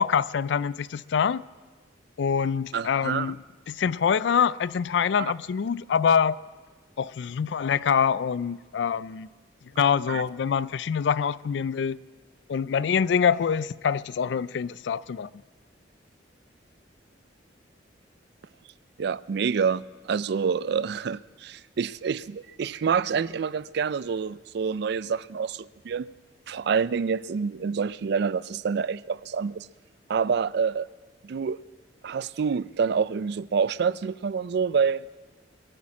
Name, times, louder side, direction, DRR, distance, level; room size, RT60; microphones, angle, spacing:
voice 1, 0.0-1.4 2.2-3.4 3.7-6.4 7.0-9.3 9.8-12.0 12.5-15.3, left 7 dB, 70° left, 0.4 m, -25 dB
voice 2, 2.7-3.4 5.2-5.3 10.1-10.2 19.0-26.1 26.5-29.7 30.1-30.9 31.2-31.6 32.0-35.0, right 6 dB, 65° right, 0.4 m, -27 dB
22.5 x 8.6 x 7.2 m
head